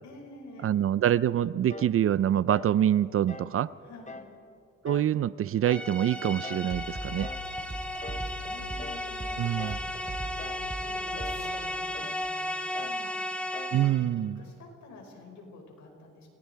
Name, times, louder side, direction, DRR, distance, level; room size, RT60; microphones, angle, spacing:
voice 1, 0.0-0.8 3.8-4.3 7.8-16.3, left 2 dB, 70° left, 1 dB, 5.6 m, -50 dB
voice 2, 0.6-3.7 4.8-7.3 9.4-9.8 13.7-14.4, right 11 dB, 50° right, 19 dB, 0.5 m, -25 dB
sound 1, 1.7-2.0 2.5-2.8 3.3-3.6 4.1-4.3 4.9-5.2 5.6-5.9 6.4-6.7 7.2-7.5 8.0-8.3 8.8-9.1 9.6-9.9 10.4-10.7 11.2-11.4 11.9-12.2 12.7-13.0 13.5-13.8, left 3 dB, 25° left, 1.2 m, -44 dB
sound 2, 5.6-14.1, left 1 dB, 5° left, 2.1 m, -35 dB
sound 3, 6.7-11.6, right 1 dB, 25° right, 4.0 m, -39 dB
28.5 x 20.0 x 4.7 m, 2.3 s
cardioid pair, 90°, 30 cm